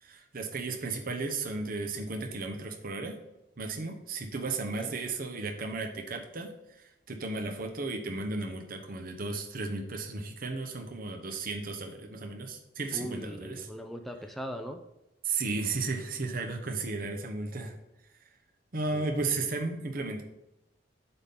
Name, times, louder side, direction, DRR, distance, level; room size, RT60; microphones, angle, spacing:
voice 1, 0.0-3.1 3.6-6.5 6.8-13.7 15.2-17.7 18.7-20.2, right 3 dB, 50° right, 4 dB, 0.9 m, -34 dB
voice 2, 12.9-14.8 18.9-19.2, equal, ahead, 4 dB, 0.5 m, -40 dB
8.1 x 3.7 x 5.7 m, 0.89 s
head